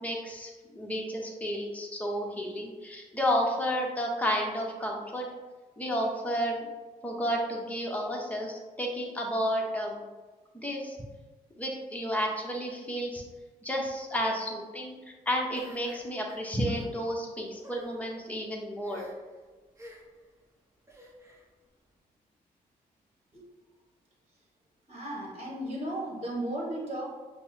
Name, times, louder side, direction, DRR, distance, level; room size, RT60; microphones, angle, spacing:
voice 1, 0.0-5.3 5.8-6.7 7.0-10.0 10.5-11.0 11.6-13.2 13.6-14.9 15.3-19.1, equal, 10° left, -1 dB, 0.8 m, -31 dB
sound 1, 15.6-16.9 17.5-17.9 18.8-19.3 19.8-20.2 20.9-21.4, right 1 dB, 15° right, 0.9 m, -48 dB
voice 2, 24.9-27.1, right 1 dB, 40° right, -3 dB, 1.2 m, -35 dB
5.3 x 2.0 x 2.7 m, 1.3 s
cardioid pair, 70°, 16 cm